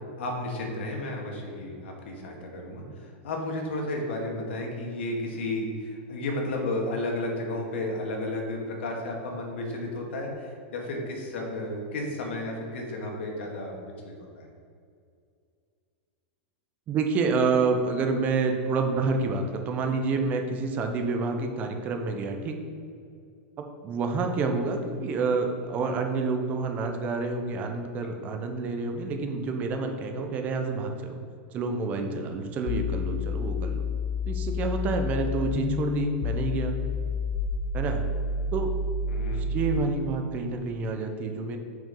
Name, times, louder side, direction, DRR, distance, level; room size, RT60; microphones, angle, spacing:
voice 1, 0.2-14.5 39.1-39.4, left 1 dB, 85° left, 0 dB, 2.1 m, -33 dB
voice 2, 16.9-22.6 23.8-31.2 31.5-33.9 34.3-36.8 37.7-38.0 38.5-38.7 39.5-41.6, right 4 dB, 25° right, 4 dB, 0.8 m, -28 dB
sound 1, 32.7-39.8, left 4 dB, 40° left, 0.5 m, -29 dB
7.1 x 6.2 x 5.4 m, 2.3 s
supercardioid pair, 165°, 6 cm